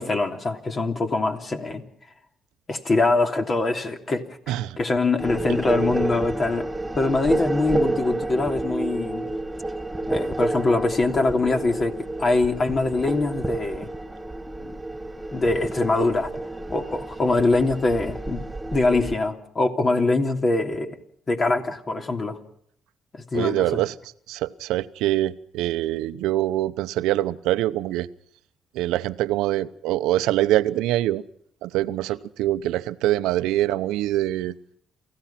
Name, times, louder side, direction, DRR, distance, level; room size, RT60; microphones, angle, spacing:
voice 1, 0.0-1.8 2.7-6.7 6.9-9.3 10.1-13.9 14.6-14.8 15.3-16.3 16.7-18.4 18.7-21.0 21.3-22.4 23.1-23.8, left 3 dB, 40° left, 5 dB, 3.2 m, -23 dB
voice 2, 4.5-4.8 23.3-23.9 24.3-28.1 28.7-31.2 31.6-34.5, right 14 dB, 90° right, 13 dB, 0.8 m, -24 dB
sound 1, 5.2-19.2, right 2 dB, 15° right, 2.3 m, -30 dB
28.5 x 15.5 x 5.9 m, 0.66 s
supercardioid pair, 65°, 0 cm